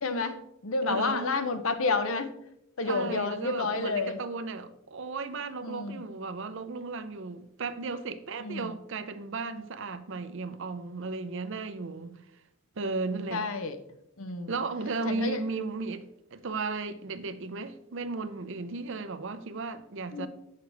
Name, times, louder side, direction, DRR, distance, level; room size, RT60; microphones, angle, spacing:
voice 1, 0.0-2.3 2.8-4.2 5.6-6.0 8.4-8.7 13.3-13.8 14.2-14.5 15.0-15.4 20.1-20.3, left 3 dB, 80° left, 0.8 m, -30 dB
voice 2, 0.8-1.3 2.8-12.2 12.8-13.5 14.5-20.3, right 3 dB, 65° right, 0.6 m, -35 dB
8.1 x 6.6 x 3.4 m
head